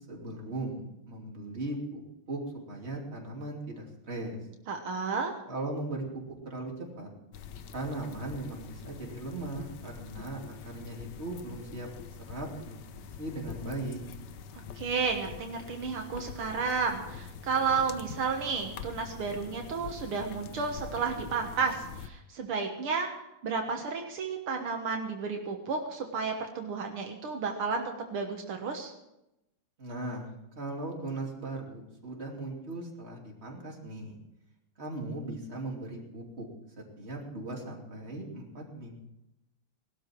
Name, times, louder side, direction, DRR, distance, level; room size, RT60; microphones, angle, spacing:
voice 1, 0.1-2.0 2.3-2.4 2.7-4.4 5.5-7.1 7.7-11.9 12.3-14.0 29.8-34.2 34.8-36.5 36.8-38.9, right 2 dB, 30° right, -1 dB, 3.1 m, -38 dB
voice 2, 4.7-5.3 14.8-23.1 23.4-28.9, right 5 dB, 75° right, 3 dB, 2.2 m, -32 dB
sound 1, 7.3-22.1, left 6 dB, 65° left, 1.2 m, -45 dB
19.0 x 12.5 x 4.6 m, 0.88 s
omnidirectional pair, 2.4 m